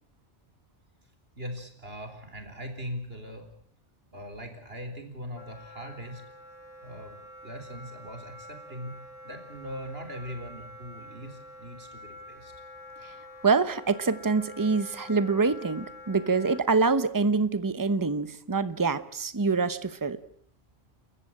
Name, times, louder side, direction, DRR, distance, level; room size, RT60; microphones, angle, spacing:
voice 1, 1.4-3.5 4.1-6.2 6.8-7.1 7.4-8.9 9.2-12.5, equal, 65° right, 6 dB, 4.4 m, -40 dB
Wind instrument woodwind instrument, 5.4-16.6, left 1 dB, 35° left, 3.6 m, -47 dB
voice 2, 13.4-20.2, right 4 dB, 20° right, 14 dB, 0.9 m, -25 dB
29.0 x 15.0 x 8.7 m, 0.63 s
omnidirectional pair, 1.1 m